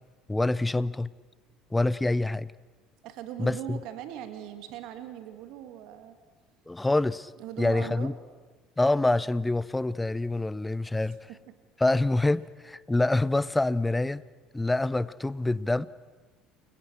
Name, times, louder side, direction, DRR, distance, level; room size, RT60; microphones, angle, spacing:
voice 1, 0.3-1.1 1.7-2.5 3.4-3.8 6.7-7.3 7.6-8.2 8.8-11.2 11.8-14.2 14.5-15.9, left 2 dB, 10° left, 20 dB, 0.8 m, -26 dB
voice 2, 3.0-6.2 7.4-8.1 11.3-11.5, right 11 dB, 60° right, 9 dB, 2.2 m, -40 dB
30.0 x 22.0 x 6.4 m, 1.3 s
figure-of-eight pair, 65°, 0 cm